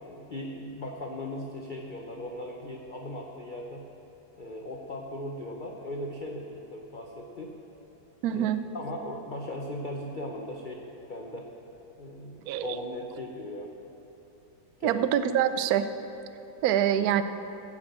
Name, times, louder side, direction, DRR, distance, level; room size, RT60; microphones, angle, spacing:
voice 1, 0.0-3.8 4.3-7.5 8.3-8.5 8.7-10.8 11.1-11.5 12.0-13.7 14.8-15.1, left 1 dB, 40° left, 0 dB, 0.7 m, -38 dB
voice 2, 8.2-8.6 12.5-12.8 14.8-15.9 16.6-17.2, right 10 dB, 70° right, 11 dB, 1.0 m, -25 dB
15.0 x 6.1 x 7.6 m, 3.0 s
omnidirectional pair, 1.9 m